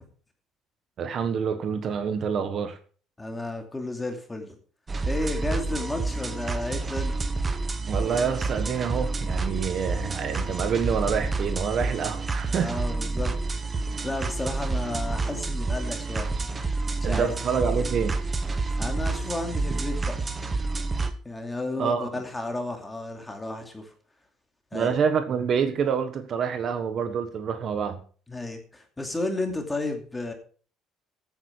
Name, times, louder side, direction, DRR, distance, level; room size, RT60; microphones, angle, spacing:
voice 1, 1.0-2.8 7.9-12.8 17.0-18.2 21.8-22.1 24.7-28.0, right 6 dB, 40° right, 9 dB, 1.3 m, -27 dB
voice 2, 3.2-4.6 5.1-7.3 12.5-13.4 14.0-16.3 17.0-17.3 18.8-20.2 21.2-23.9 24.7-25.0 28.3-30.3, left 2 dB, 10° left, 4 dB, 2.7 m, -32 dB
sound 1, 4.9-21.1, right 3 dB, 20° right, 1.2 m, -29 dB
15.0 x 9.3 x 4.7 m, 0.42 s
cardioid pair, 160°, 0 cm